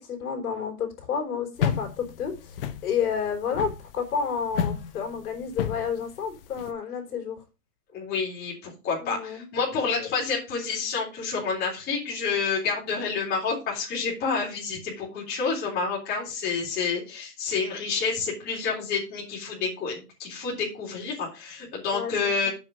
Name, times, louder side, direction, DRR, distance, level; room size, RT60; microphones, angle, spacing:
voice 1, 0.1-7.4 9.0-9.5 9.8-10.1 21.9-22.1 22.4-22.5, left 6 dB, 65° left, 2 dB, 4.0 m, -30 dB
sound 1, 1.6-6.7, left 8 dB, 35° left, 0.8 m, -31 dB
voice 2, 7.9-22.5, left 5 dB, 20° left, -3 dB, 3.7 m, -29 dB
7.8 x 5.6 x 6.6 m, 0.31 s
hypercardioid pair, 170°, 48 cm